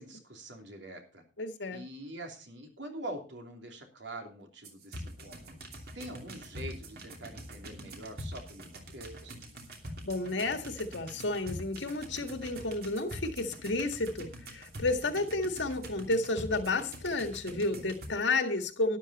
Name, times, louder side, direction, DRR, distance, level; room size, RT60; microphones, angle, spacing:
voice 1, 0.0-1.2 1.7-5.6 5.9-9.5, right 1 dB, 70° right, 3.0 m, -44 dB
voice 2, 1.4-1.8 10.0-19.0, left 2 dB, 70° left, 1.8 m, -31 dB
sound 1, 4.6-18.1, equal, 50° right, 2.9 m, -45 dB
12.5 x 11.0 x 4.2 m
head